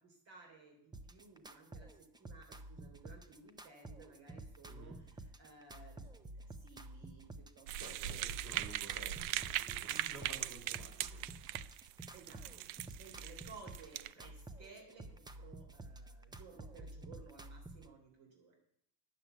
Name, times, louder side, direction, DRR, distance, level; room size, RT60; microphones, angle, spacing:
voice 1, 0.3-0.7 1.1-1.9 2.3-4.9 5.4-6.0 6.6-7.3 7.6-7.7 8.0-8.2 10.2-10.8 12.1-12.4 13.0-14.3 14.6-18.5, right 4 dB, 65° right, 0 dB, 3.5 m, -57 dB
sound 1, 0.9-17.9, right 2 dB, 10° right, 0.4 m, -51 dB
voice 2, 4.6-5.0 7.7-11.5 12.2-12.6, right 2 dB, 35° right, 1 dB, 4.3 m, -54 dB
sound 2, 7.7-14.1, right 14 dB, 85° right, 0.6 m, -40 dB
10.5 x 7.6 x 8.0 m, 0.73 s
cardioid pair, 130°, 49 cm